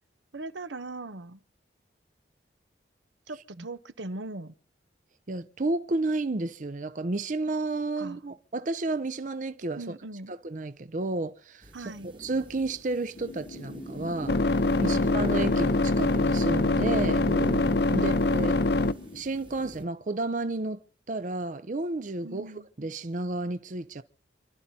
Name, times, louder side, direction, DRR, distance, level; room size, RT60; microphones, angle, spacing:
voice 1, 0.3-1.4 3.3-4.5 8.0-8.2 9.8-10.3 11.7-12.1 14.8-15.0 17.9-18.2 22.2-22.7, right 2 dB, 85° right, 0.9 m, -40 dB
voice 2, 5.3-9.8 10.3-11.6 12.0-14.4 14.8-17.3 17.9-18.6 19.1-20.8 21.1-22.5 22.8-24.0, right 2 dB, 45° right, 0.6 m, -31 dB
sound 1, 11.6-19.8, right 1 dB, 25° right, 1.3 m, -42 dB
sound 2, 13.2-19.2, left 2 dB, 60° left, 0.7 m, -25 dB
29.5 x 12.0 x 2.8 m
head